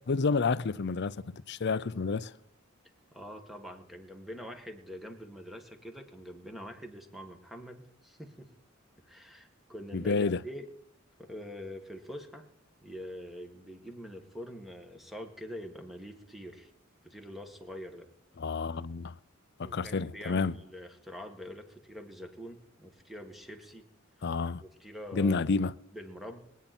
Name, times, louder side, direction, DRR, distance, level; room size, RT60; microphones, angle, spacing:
voice 1, 0.1-2.3 9.9-10.4 18.4-19.1 19.6-20.5 24.2-24.6 25.1-25.7, left 4 dB, 55° left, 0.6 m, -29 dB
voice 2, 3.1-8.5 9.0-10.7 11.2-12.5 12.8-16.7 17.0-18.1 19.6-23.9 24.6-26.4, equal, ahead, 1.9 m, -45 dB
22.5 x 9.4 x 4.4 m
head